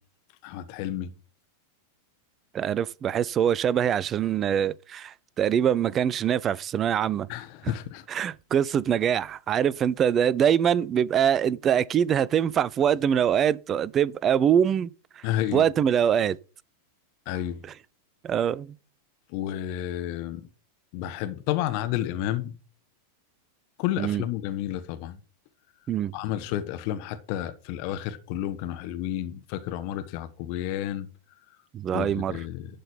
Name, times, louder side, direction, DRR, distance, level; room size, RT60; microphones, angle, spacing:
voice 1, 0.4-1.1 7.3-8.0 15.2-15.6 17.3-17.6 19.3-20.4 20.9-22.5 23.8-25.2 26.1-31.1 31.9-32.7, left 12 dB, 45° left, 1.1 m, -31 dB
voice 2, 2.5-7.3 7.6-7.7 8.1-14.9 15.2-16.4 17.6-17.7 18.2-18.7 24.0-24.2 25.9-26.1 31.7-32.4, right 9 dB, 25° right, 0.4 m, -24 dB
11.5 x 3.9 x 7.0 m
figure-of-eight pair, 90°, 0 cm